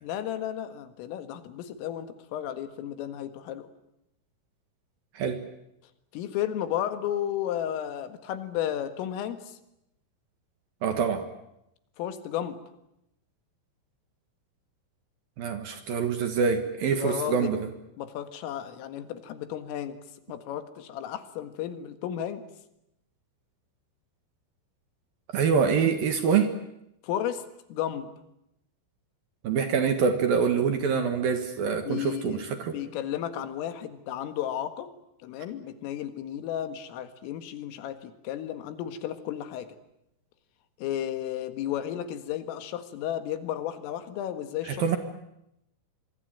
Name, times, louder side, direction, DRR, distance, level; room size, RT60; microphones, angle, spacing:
voice 1, 0.0-3.7 6.1-9.6 12.0-12.6 16.9-17.6 18.0-20.0 20.3-22.5 27.0-27.4 27.7-28.1 31.8-32.4 32.7-34.9 35.2-39.8 40.8-45.0, left 11 dB, 85° left, 9 dB, 4.3 m, -33 dB
voice 2, 10.8-11.3 15.4-17.6 25.3-26.5 29.4-32.7 44.7-45.0, right 6 dB, 60° right, 7 dB, 2.8 m, -25 dB
26.0 x 23.5 x 9.1 m, 0.84 s
omnidirectional pair, 5.8 m